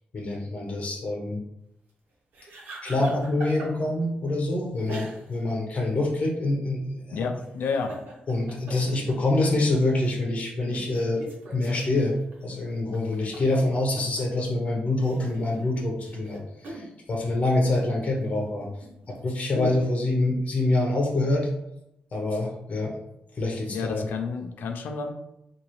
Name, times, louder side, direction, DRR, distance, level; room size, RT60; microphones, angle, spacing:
voice 1, 0.1-1.4 2.8-7.3 8.3-11.2 11.5-12.2 12.4-18.7 19.1-21.5 22.1-23.0 23.4-24.1, left 2 dB, 45° left, -1 dB, 0.9 m, -26 dB
sound 1, 2.3-4.0 4.9-5.5 5.8-5.9 7.4-9.5 10.0-10.2 10.6-14.4 14.9-16.9 18.0-19.5, right 1 dB, 80° right, 1.0 m, -42 dB
voice 2, 7.1-7.9 19.5-19.7 23.7-25.1, left 5 dB, 85° left, 5 dB, 0.5 m, -30 dB
3.9 x 2.6 x 3.1 m, 0.82 s
cardioid pair, 120°, 3 cm